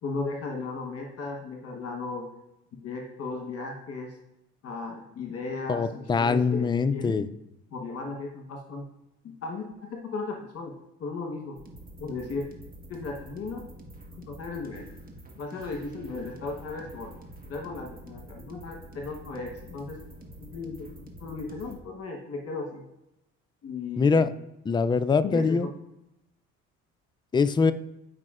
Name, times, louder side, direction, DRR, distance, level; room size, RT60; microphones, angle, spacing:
voice 1, 0.0-2.3 2.7-4.2 4.6-7.2 7.7-8.9 9.2-10.7 11.0-11.6 12.0-12.5 12.9-13.6 14.1-14.9 15.4-20.0 20.4-22.8 23.6-24.2 25.2-25.7, left 3 dB, 50° left, 2 dB, 1.1 m, -36 dB
voice 2, 5.7-7.3 24.0-24.3 24.7-25.7 27.3-27.7, left 5 dB, 15° left, 11 dB, 0.3 m, -23 dB
sound 1, 11.6-21.7, right 1 dB, 30° right, 1.4 m, -46 dB
9.5 x 5.0 x 2.5 m, 0.89 s
supercardioid pair, 75°, 31 cm